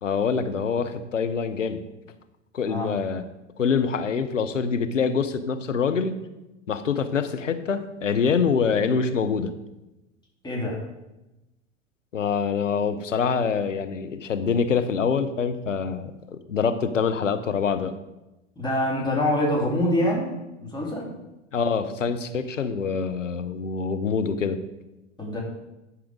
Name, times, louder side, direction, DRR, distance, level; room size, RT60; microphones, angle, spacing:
voice 1, 0.0-1.8 2.5-3.2 3.6-6.2 6.7-9.5 12.1-16.1 16.5-17.9 21.5-24.6, left 6 dB, 90° left, 9 dB, 0.8 m, -25 dB
voice 2, 10.4-10.8 18.6-20.3 20.6-21.2 25.2-25.4, left 1 dB, 10° left, -3 dB, 2.9 m, -25 dB
11.0 x 5.0 x 5.0 m, 0.98 s
hypercardioid pair, 95°, 37 cm